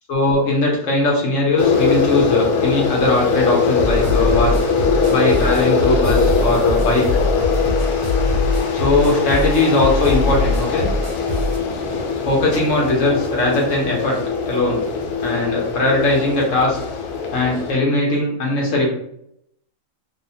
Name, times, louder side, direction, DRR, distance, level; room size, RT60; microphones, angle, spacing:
voice 1, 0.1-4.5 5.1-7.1 8.7-10.9 12.3-14.2 14.5-14.8 15.2-16.8 17.3-18.9, left 2 dB, 65° left, -2 dB, 1.0 m, -19 dB
sound 1, 1.6-17.7, left 5 dB, 85° left, 1.1 m, -21 dB
sound 2, 3.8-11.6, left 1 dB, 65° right, 0.9 m, -22 dB
2.7 x 2.1 x 2.6 m, 0.73 s
omnidirectional pair, 1.6 m